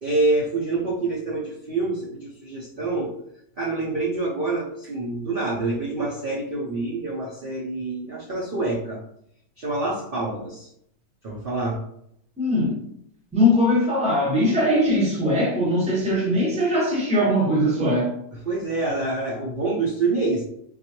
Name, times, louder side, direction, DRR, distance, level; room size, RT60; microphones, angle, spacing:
voice 1, 0.0-3.1 3.6-9.0 9.6-10.7 11.2-11.8 18.4-20.4, right 2 dB, 55° right, -4 dB, 0.6 m, -26 dB
voice 2, 12.4-12.8 13.3-18.2, left 1 dB, 5° right, -5 dB, 0.7 m, -21 dB
3.9 x 2.3 x 2.8 m, 0.72 s
omnidirectional pair, 1.6 m